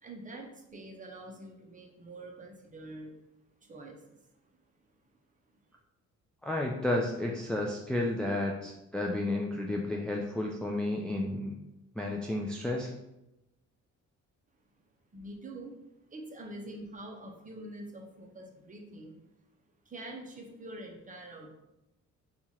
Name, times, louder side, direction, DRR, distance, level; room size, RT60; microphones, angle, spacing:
voice 1, 0.0-3.2 3.6-4.2 15.1-15.8 16.1-19.2 19.9-21.5, right 1 dB, 25° right, 1 dB, 0.7 m, -45 dB
voice 2, 6.4-11.6 12.0-12.9, left 1 dB, 5° left, -1 dB, 0.3 m, -32 dB
2.8 x 2.4 x 4.2 m, 0.91 s
cardioid pair, 90°, 30 cm